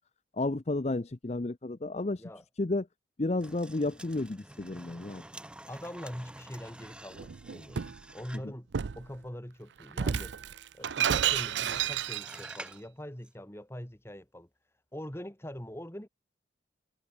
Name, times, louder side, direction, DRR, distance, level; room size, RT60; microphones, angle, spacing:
voice 1, 0.3-2.2 2.6-2.9 3.2-5.2 8.4-8.5, left 2 dB, 35° left, 0.6 m, -32 dB
sound 1, 3.4-8.6 10.9-12.9 13.2-13.3, right 1 dB, 5° right, 0.6 m, -49 dB
voice 2, 5.7-8.7 9.0-10.3 10.7-14.5 14.9-16.1, equal, 15° left, 2.2 m, -43 dB
Shatter, 7.1-8.0 8.7-9.1 9.9-12.5, right 8 dB, 70° right, 0.5 m, -31 dB
head